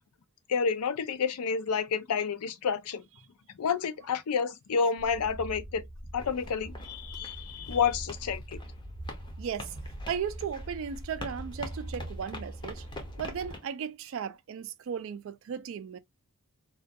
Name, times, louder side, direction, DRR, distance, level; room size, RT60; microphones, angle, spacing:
voice 1, 0.5-3.0 3.6-5.8 6.1-8.6, left 6 dB, 85° left, 0.4 m, -29 dB
sound 1, 5.0-13.6, right 1 dB, 35° right, 0.8 m, -42 dB
sound 2, 6.2-13.7, left 2 dB, 20° left, 0.5 m, -46 dB
voice 2, 9.4-9.7 10.1-12.9 13.2-16.0, right 7 dB, 60° right, 0.3 m, -36 dB
2.3 x 2.2 x 2.5 m
head